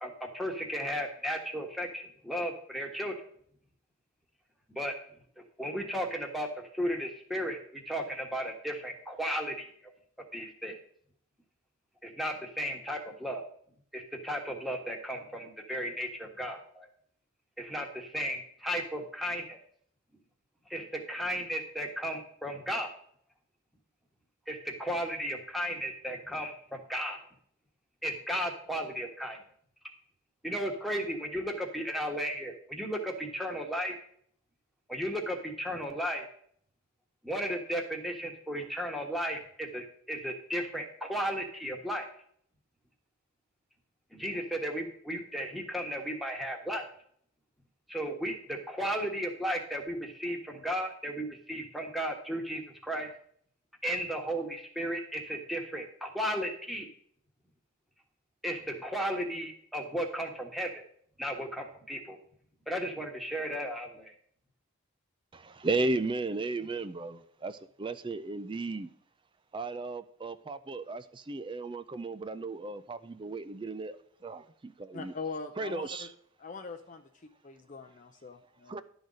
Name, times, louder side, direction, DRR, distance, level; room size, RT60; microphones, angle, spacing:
voice 1, 0.0-3.1 4.7-5.0 5.6-9.7 10.3-10.8 12.0-13.4 13.9-16.9 17.6-19.6 20.7-22.9 24.5-27.2 28.0-29.4 30.4-33.9 34.9-36.3 37.2-42.1 44.1-46.8 47.9-53.1 53.8-56.9 58.4-60.8 61.2-62.2 62.7-64.1, equal, ahead, 1.3 m, -35 dB
voice 2, 65.3-68.9 69.5-74.0 74.2-74.4 74.8-75.1 75.6-76.1 78.7-78.8, right 3 dB, 25° right, 0.4 m, -34 dB
voice 3, 74.9-76.1 76.4-77.1 77.4-78.8, left 4 dB, 35° left, 0.6 m, -42 dB
11.5 x 4.0 x 7.4 m
head